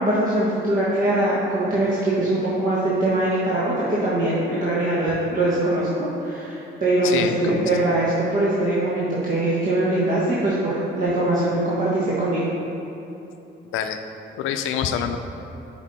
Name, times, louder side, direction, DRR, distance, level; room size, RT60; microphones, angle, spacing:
voice 1, 0.0-12.4, right 1 dB, 40° right, -8 dB, 1.4 m, -22 dB
voice 2, 7.0-7.6 13.7-14.0 14.4-15.2, left 8 dB, 85° left, 7 dB, 0.5 m, -26 dB
7.3 x 5.1 x 4.1 m, 2.9 s
cardioid pair, 90°, 20 cm